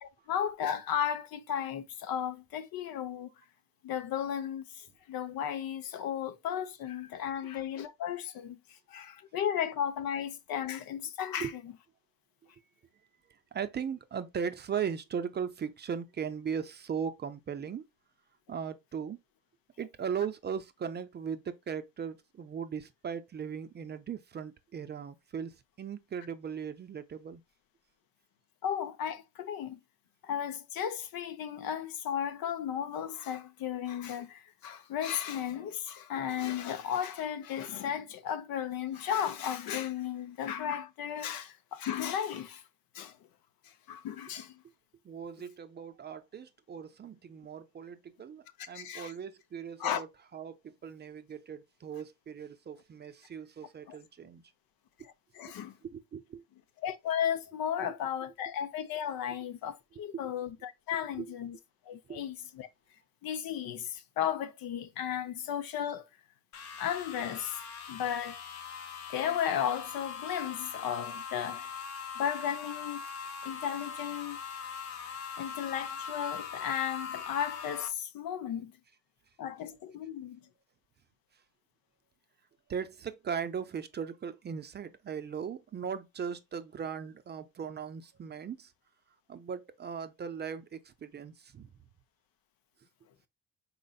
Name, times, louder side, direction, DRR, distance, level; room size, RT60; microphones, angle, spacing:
voice 1, 0.0-3.3 3.8-11.6 28.6-29.8 30.2-42.6 42.9-43.2 43.6-44.6 48.7-49.1 49.8-50.0 53.9-54.0 55.0-55.8 56.8-61.6 61.9-62.7 63.2-66.1 66.8-68.4 69.1-71.7 72.1-73.0 73.4-74.4 75.4-78.7 79.4-80.4, left 9 dB, 85° left, 0.8 m, -35 dB
voice 2, 13.3-17.8 18.5-19.2 19.8-27.4 45.0-50.1 50.3-54.4 55.8-56.4 57.8-57.9 60.1-60.3 60.9-61.3 62.1-62.2 82.7-88.7 89.3-91.7, right 7 dB, 30° right, 0.4 m, -38 dB
sound 1, 66.5-77.9, left 6 dB, 55° left, 0.8 m, -41 dB
5.3 x 4.2 x 2.3 m
cardioid pair, 165°, 34 cm